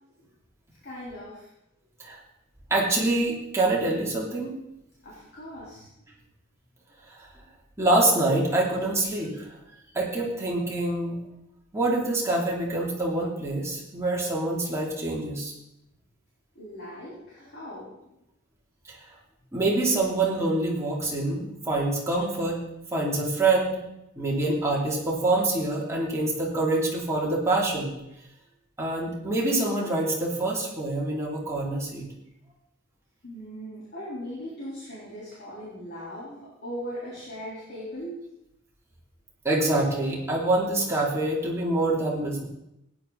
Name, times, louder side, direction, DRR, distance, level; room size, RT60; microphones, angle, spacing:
voice 1, 0.8-1.5 5.0-6.1 16.6-17.9 33.2-38.1, equal, 55° left, -8 dB, 3.8 m, -39 dB
voice 2, 2.7-4.5 7.8-9.3 9.9-11.3 11.7-15.5 19.5-22.6 22.9-23.8 24.2-27.9 28.8-32.1 39.4-42.4, right 2 dB, 15° right, -4 dB, 3.1 m, -25 dB
16.0 x 10.0 x 4.1 m, 0.85 s
head